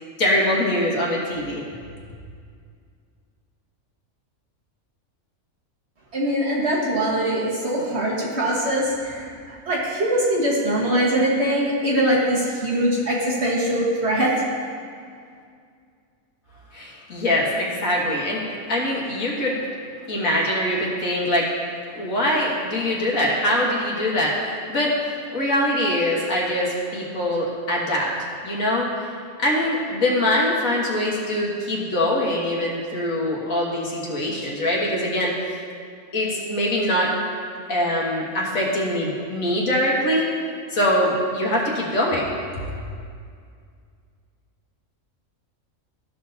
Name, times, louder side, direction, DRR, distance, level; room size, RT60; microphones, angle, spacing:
voice 1, 0.2-1.6 16.7-19.6 20.1-21.5 21.9-28.1 28.4-28.9 29.4-35.3 36.1-37.1 37.7-40.3 40.7-42.3 42.7-42.8, left 1 dB, 90° left, -3 dB, 1.9 m, -23 dB
voice 2, 6.1-14.3, right 1 dB, 55° right, -5 dB, 1.9 m, -22 dB
14.0 x 6.0 x 2.8 m, 2.2 s
omnidirectional pair, 1.4 m